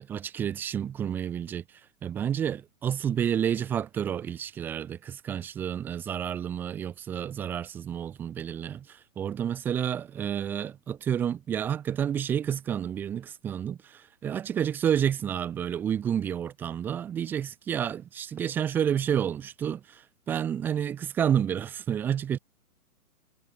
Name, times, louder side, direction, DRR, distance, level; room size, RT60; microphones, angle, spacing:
voice 1, 0.0-1.6 2.0-22.4, right 9 dB, 5° right, 1.0 m, -30 dB
hypercardioid pair, 170°, 45 cm